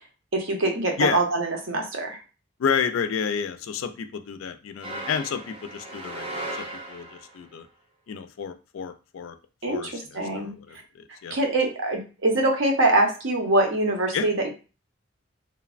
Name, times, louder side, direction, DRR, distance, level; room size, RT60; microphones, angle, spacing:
voice 1, 0.3-2.2 9.6-10.5 11.3-14.5, right 2 dB, 80° right, 2 dB, 0.7 m, -24 dB
voice 2, 2.6-7.7 8.1-9.3 9.7-10.8 11.2-11.3 14.1-14.3, left 6 dB, 85° left, 9 dB, 0.4 m, -30 dB
sound 1, 4.8-7.4, right 1 dB, 30° right, 0.5 m, -36 dB
3.2 x 2.1 x 2.4 m, 0.33 s
head